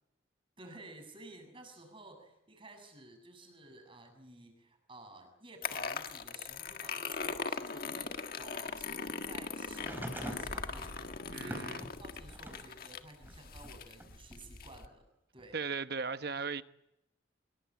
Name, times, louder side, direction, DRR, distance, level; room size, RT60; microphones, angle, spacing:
voice 1, 0.6-15.0 15.3-15.6, right 2 dB, 30° right, 7.2 m, -53 dB
sound 1, 5.6-14.9, left 4 dB, 50° left, 1.7 m, -40 dB
sound 2, 9.7-12.7 13.2-14.4 15.4-15.5, equal, 10° right, 4.6 m, -45 dB
voice 2, 11.3-11.8 15.5-16.6, right 5 dB, 55° right, 1.0 m, -37 dB
25.0 x 22.5 x 8.9 m
head